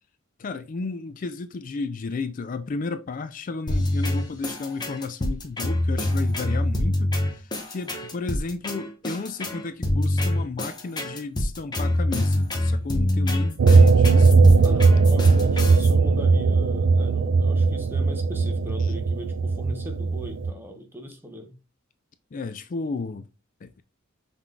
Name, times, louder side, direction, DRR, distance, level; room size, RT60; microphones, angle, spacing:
voice 1, 0.4-14.5 15.1-15.2 18.8-18.9 22.3-23.2 23.6-23.7, left 4 dB, 40° left, 0.4 m, -33 dB
sound 1, 3.7-15.9, left 1 dB, 20° left, 1.0 m, -26 dB
sound 2, 13.6-20.5, right 4 dB, 60° right, 0.4 m, -18 dB
voice 2, 14.6-21.5, equal, 10° right, 0.9 m, -39 dB
5.6 x 3.6 x 2.3 m
head